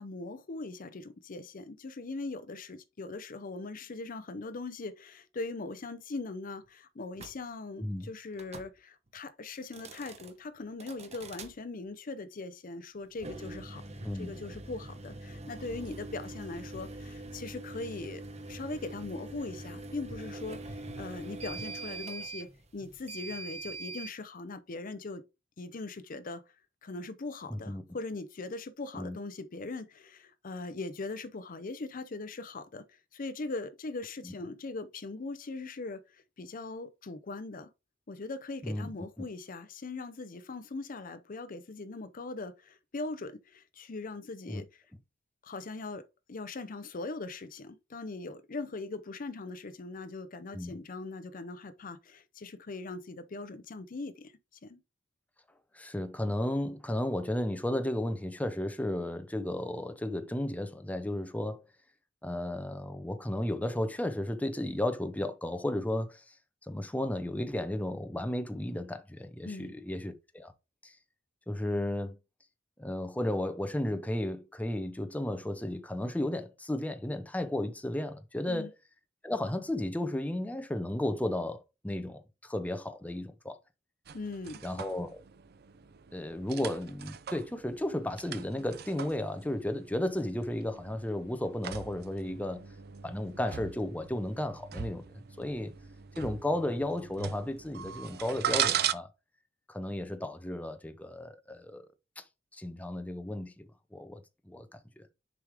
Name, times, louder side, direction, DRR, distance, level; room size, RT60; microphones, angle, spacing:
voice 1, 0.0-18.2 18.5-25.2 25.6-26.4 26.8-37.7 38.1-44.8 45.4-54.3 54.6-54.8 69.4-69.8 78.5-78.7 84.1-84.6, left 3 dB, 45° left, 0.6 m, -40 dB
sound 1, 7.2-7.4 8.3-8.7 9.6-10.3 10.8-11.5 13.1-24.1, right 2 dB, 35° right, 1.0 m, -43 dB
voice 2, 27.5-27.8 28.9-29.2 34.2-34.3 38.6-38.9 44.5-44.6 50.5-50.7 55.7-61.6 62.2-66.2 66.6-70.5 70.8-70.9 71.5-72.2 72.8-78.7 79.2-83.6 84.6-85.2 86.1-92.6 93.0-95.7 96.2-99.1 99.7-101.9 102.2-102.3 102.5-105.1, left 1 dB, 10° left, 0.7 m, -34 dB
sound 2, 84.1-98.9, right 9 dB, 55° right, 0.5 m, -39 dB
6.9 x 4.7 x 3.5 m
head